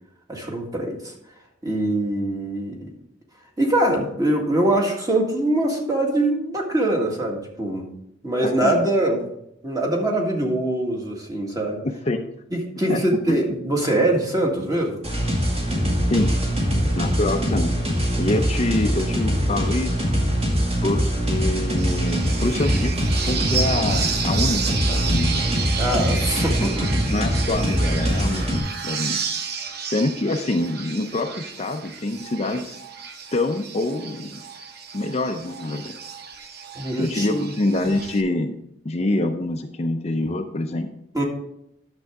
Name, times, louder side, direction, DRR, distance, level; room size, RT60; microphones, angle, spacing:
voice 1, 0.3-1.1 1.6-2.9 3.6-7.9 8.2-9.2 9.6-11.8 12.5-15.0 25.8-26.9 36.8-37.5 41.1-41.2, right 1 dB, 20° right, 0 dB, 1.8 m, -23 dB
voice 2, 8.4-8.8 11.8-12.2 12.9-13.4 16.1-16.3 16.9-17.7 18.2-20.0 20.8-23.0 23.2-25.5 26.5-26.7 27.1-29.2 29.9-32.8 33.3-34.4 34.9-35.9 37.0-38.5 38.8-40.9, left 2 dB, 35° left, 5 dB, 0.6 m, -25 dB
sound 1, 15.0-28.6, equal, 35° right, 2.3 m, -23 dB
sound 2, 21.8-38.2, right 6 dB, 60° right, 0.8 m, -32 dB
10.5 x 6.9 x 3.5 m, 0.78 s
head